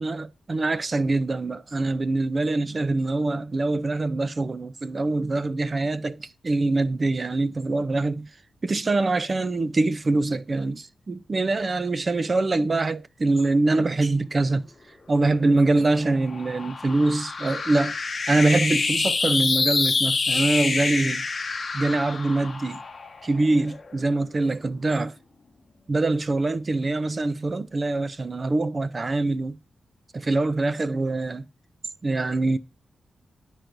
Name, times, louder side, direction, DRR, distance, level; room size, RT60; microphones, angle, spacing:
voice 1, 0.0-8.3 8.6-14.7 15.1-17.9 18.3-21.3 21.7-22.8 23.2-25.1 25.9-29.6 30.1-31.5 32.0-32.6, right 2 dB, 35° right, 0.4 m, -24 dB
sound 1, 15.4-24.0, left 4 dB, 40° left, 0.9 m, -27 dB
10.5 x 4.5 x 2.5 m
wide cardioid pair, 130°, 0 cm